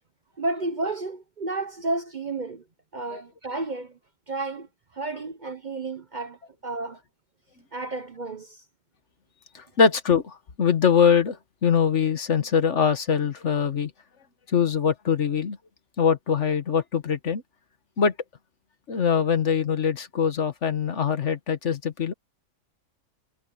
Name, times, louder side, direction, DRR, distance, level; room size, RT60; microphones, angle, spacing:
voice 1, 0.4-2.6 2.9-4.0 4.3-4.7 4.9-7.0 7.7-8.6, right 2 dB, 40° right, 0.9 m, -31 dB
voice 2, 9.5-13.9 14.5-15.6 16.0-17.4 18.0-18.1 18.9-22.1, left 6 dB, 60° left, 1.6 m, -23 dB
omnidirectional pair, 1.4 m